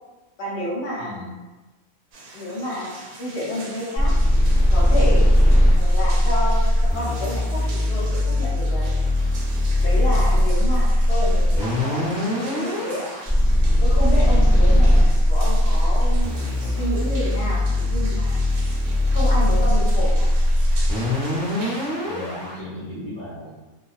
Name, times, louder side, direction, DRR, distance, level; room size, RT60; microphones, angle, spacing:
voice 1, 0.4-1.2 2.3-2.9 3.2-4.1 4.7-5.3 5.8-8.9 9.8-13.1 13.8-16.3 16.6-18.4 19.1-20.4, left 1 dB, 55° left, -5 dB, 0.9 m, -30 dB
sound 1, 2.1-21.9, right 2 dB, 80° right, 1.0 m, -42 dB
sound 2, 4.0-22.5, left 1 dB, 5° right, 0.6 m, -19 dB
voice 2, 21.8-23.5, left 1 dB, 40° right, -11 dB, 0.8 m, -37 dB
2.3 x 2.2 x 2.4 m, 1.2 s
omnidirectional pair, 1.5 m